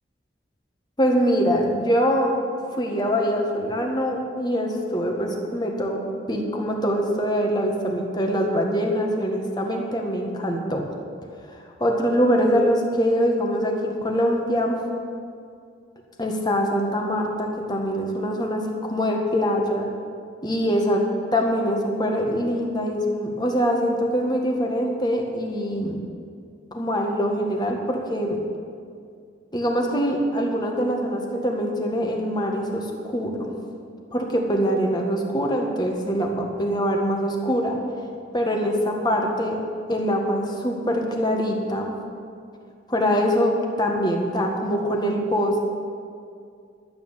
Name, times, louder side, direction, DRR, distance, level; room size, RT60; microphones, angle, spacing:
voice 1, 1.0-2.3 2.8-6.0 6.3-10.8 11.8-14.8 16.2-19.9 20.4-21.0 21.3-26.0 26.7-28.4 29.5-33.5 34.1-37.8 38.3-39.6 39.9-41.9 42.9-45.6, equal, 25° left, 1 dB, 1.6 m, -23 dB
12.0 x 8.7 x 7.2 m, 2.3 s
head